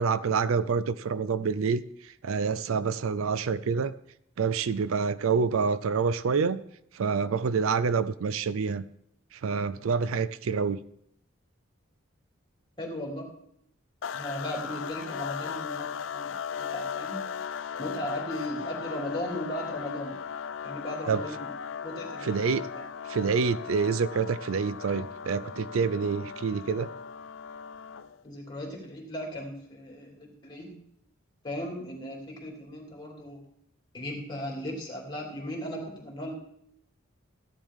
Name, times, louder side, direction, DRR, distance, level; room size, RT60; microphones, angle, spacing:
voice 1, 0.0-1.8 2.2-3.9 4.4-6.6 6.9-8.8 9.4-10.8 21.1-21.2 22.2-22.7 23.1-26.9, right 5 dB, 80° right, 16 dB, 0.4 m, -27 dB
voice 2, 12.8-13.3 14.1-17.2 17.8-20.2 20.6-21.5 21.8-22.5 28.2-30.8 31.4-33.4 33.9-36.3, equal, 20° left, -1 dB, 2.9 m, -37 dB
sound 1, 14.0-28.2, left 7 dB, 65° left, 0.4 m, -37 dB
15.0 x 10.0 x 3.6 m, 0.72 s
head